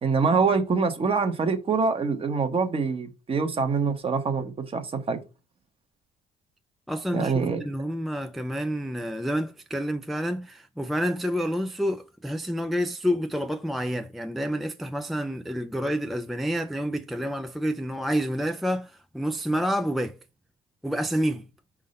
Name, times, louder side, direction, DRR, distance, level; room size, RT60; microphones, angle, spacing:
voice 1, 0.0-5.2 7.1-7.6, right 4 dB, 35° right, 1.2 m, -25 dB
voice 2, 6.9-7.3 7.6-20.2 20.8-21.5, equal, ahead, 0.4 m, -28 dB
5.4 x 3.7 x 5.2 m
cardioid pair, 110°, 17 cm